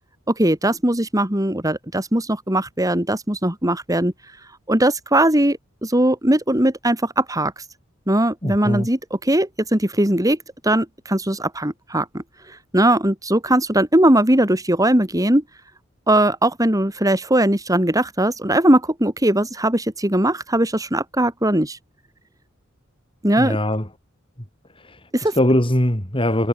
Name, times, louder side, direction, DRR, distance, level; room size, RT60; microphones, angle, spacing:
voice 1, 0.3-4.1 4.7-7.5 8.1-10.4 10.6-15.4 16.1-21.8 23.2-23.6 25.1-25.3, right 1 dB, 15° right, 3.2 m, -19 dB
voice 2, 8.4-8.9 23.4-23.9 24.8-25.0 25.3-26.5, left 1 dB, 25° left, 4.2 m, -20 dB
head